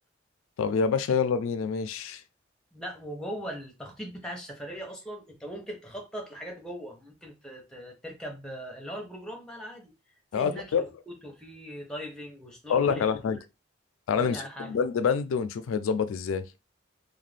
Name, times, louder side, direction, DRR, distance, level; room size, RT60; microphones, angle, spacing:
voice 1, 0.6-2.2 10.3-10.9 12.7-13.4 14.1-16.5, left 6 dB, 90° left, 0.3 m, -26 dB
voice 2, 2.7-9.9 10.3-13.2 14.1-14.8, equal, 5° left, 0.6 m, -40 dB
2.5 x 2.2 x 3.3 m
head